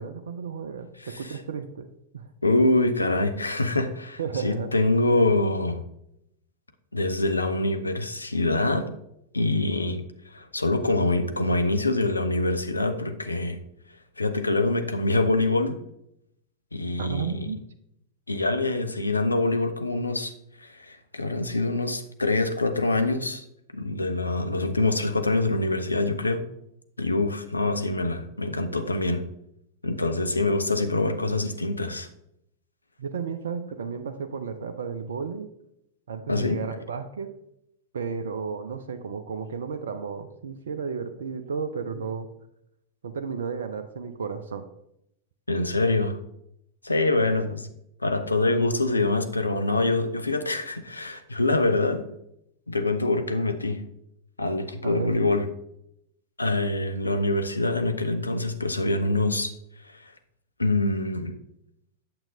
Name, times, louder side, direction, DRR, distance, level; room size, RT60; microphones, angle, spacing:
voice 1, 0.0-1.9 2.1-2.3 4.2-4.7 17.0-17.6 33.0-35.5 36.1-37.4 37.9-42.3 43.0-44.7 47.2-47.5 54.8-55.2, right 6 dB, 65° right, 9 dB, 0.5 m, -33 dB
voice 2, 1.0-1.4 2.4-5.8 6.9-8.9 9.3-10.0 10.3-13.6 14.2-15.8 16.7-17.6 18.3-20.3 20.6-23.4 23.7-26.5 27.0-29.3 29.8-32.1 36.3-36.6 45.5-46.2 46.8-47.7 48.0-52.1 52.7-53.8 54.4-55.5 56.4-59.5 59.8-60.1 60.6-61.4, left 2 dB, 80° left, 8 dB, 0.6 m, -25 dB
8.7 x 7.4 x 2.7 m, 0.79 s
figure-of-eight pair, 90°, 0 cm